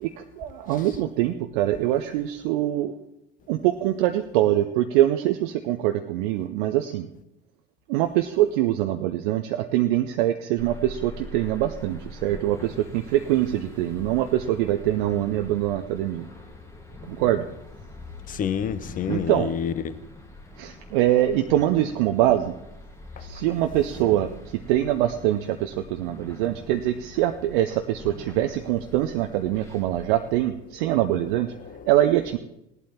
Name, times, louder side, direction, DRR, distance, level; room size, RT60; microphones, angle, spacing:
voice 1, 0.0-3.0 3.5-7.1 7.9-16.3 17.1-17.5 19.1-19.5 20.6-22.5 23.2-31.5 31.9-32.4, right 13 dB, 55° right, 0.6 m, -24 dB
sound 1, 10.6-30.4, left 2 dB, 10° left, 1.7 m, -43 dB
voice 2, 18.3-19.9 31.6-31.9, left 8 dB, 25° left, 0.7 m, -28 dB
18.0 x 11.5 x 2.9 m
figure-of-eight pair, 75°, 30 cm